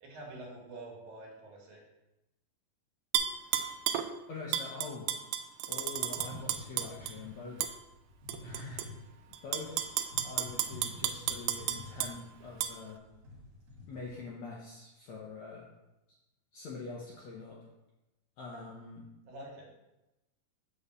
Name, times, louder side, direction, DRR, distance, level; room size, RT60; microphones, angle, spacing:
voice 1, 0.0-1.8 19.3-19.7, right 2 dB, 70° right, -2 dB, 3.3 m, -47 dB
Tap / Glass, 3.1-4.1 4.5-7.1 7.6-7.7 8.3-8.9 9.3-12.1 12.6-12.7, right 10 dB, 90° right, 2.5 m, -33 dB
voice 2, 4.3-5.1 5.7-7.6 8.4-9.1 9.4-9.9 10.2-13.0 13.9-15.6 16.5-17.6 18.4-19.0, left 4 dB, 75° left, -4 dB, 1.7 m, -44 dB
sound 1, 5.8-14.3, left 2 dB, 50° right, 2.6 m, -49 dB
7.1 x 4.2 x 6.7 m, 0.98 s
omnidirectional pair, 4.4 m